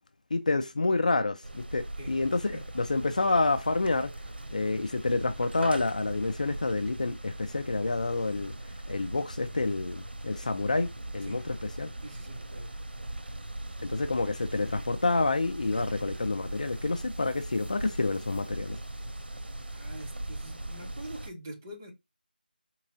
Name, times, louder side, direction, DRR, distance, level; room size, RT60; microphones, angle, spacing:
voice 1, 0.3-4.1 4.5-8.5 8.9-11.9 13.8-18.8, left 3 dB, 50° left, 0.5 m, -28 dB
sound 1, 1.4-21.3, right 1 dB, 90° right, 0.7 m, -40 dB
voice 2, 12.0-13.0 19.7-21.9, right 1 dB, 15° right, 0.6 m, -45 dB
4.4 x 2.9 x 2.6 m
figure-of-eight pair, 170°, 5 cm